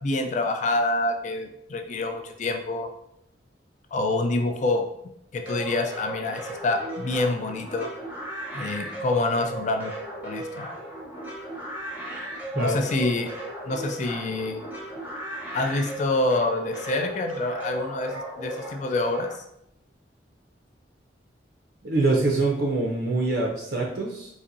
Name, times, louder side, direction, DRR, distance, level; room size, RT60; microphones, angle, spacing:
voice 1, 0.0-2.9 3.9-4.8 5.3-7.9 8.5-9.9 10.2-10.7 12.5-13.3 13.6-14.6 15.5-19.3, left 2 dB, 40° left, 5 dB, 0.3 m, -26 dB
sound 1, 5.5-19.3, right 1 dB, 10° right, 0.7 m, -36 dB
voice 2, 21.8-24.3, right 2 dB, 60° right, -1 dB, 0.5 m, -24 dB
4.0 x 2.6 x 2.5 m, 0.77 s
head